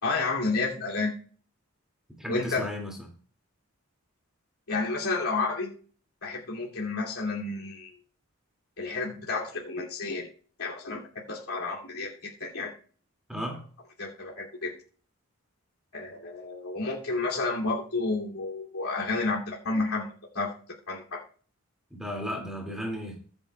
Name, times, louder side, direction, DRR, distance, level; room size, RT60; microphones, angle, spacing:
voice 1, 0.0-1.1 2.3-2.7 4.7-5.7 6.2-7.9 8.8-10.3 10.6-11.0 11.3-12.7 14.0-14.7 15.9-20.1 20.3-20.5 20.9-21.2, left 3 dB, 85° left, -4 dB, 2.9 m, -30 dB
voice 2, 2.2-3.0 13.3-13.6 21.9-23.2, equal, ahead, 0 dB, 2.5 m, -34 dB
23.0 x 8.0 x 2.4 m, 0.42 s
head